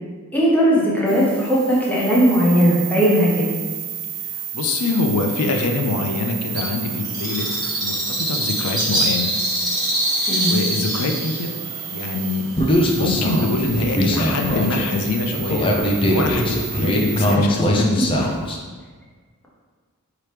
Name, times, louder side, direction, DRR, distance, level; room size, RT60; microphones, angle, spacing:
voice 1, 0.3-3.4 10.3-10.5, equal, 10° left, -6 dB, 0.9 m, -17 dB
sound 1, 1.1-17.4, right 10 dB, 90° right, 0.5 m, -32 dB
voice 2, 4.3-9.3 10.5-11.5 11.9-12.5 12.9-18.3, left 3 dB, 80° left, 3 dB, 0.5 m, -24 dB
Bird, 6.5-13.8, right 1 dB, 20° right, 0.9 m, -25 dB
Human voice, 12.6-18.6, equal, 25° left, 0.4 m, -21 dB
4.7 x 2.9 x 3.3 m, 1.5 s
head